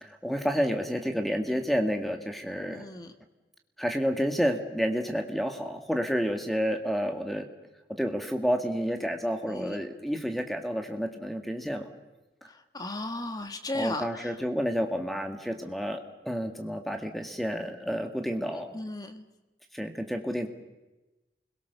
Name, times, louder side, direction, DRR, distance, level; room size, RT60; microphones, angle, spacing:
voice 1, 0.0-2.9 3.8-7.5 7.9-11.9 13.7-18.8 19.7-20.5, equal, ahead, 5 dB, 2.0 m, -30 dB
voice 2, 2.7-3.1 9.5-9.8 12.7-14.3 18.7-19.2, left 2 dB, 20° left, 7 dB, 1.6 m, -35 dB
29.0 x 22.0 x 7.0 m, 1.1 s
head